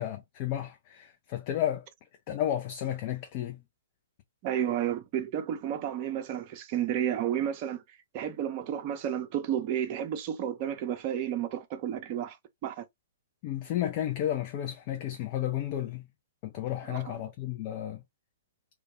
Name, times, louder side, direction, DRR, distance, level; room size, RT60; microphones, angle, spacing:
voice 1, 0.0-1.8 2.3-3.6 13.4-16.1 16.4-18.0, left 11 dB, 35° left, 0.3 m, -32 dB
voice 2, 4.4-12.4 12.6-12.8 16.9-17.2, right 10 dB, 35° right, 0.5 m, -32 dB
2.2 x 2.1 x 2.8 m
figure-of-eight pair, 115°, 0 cm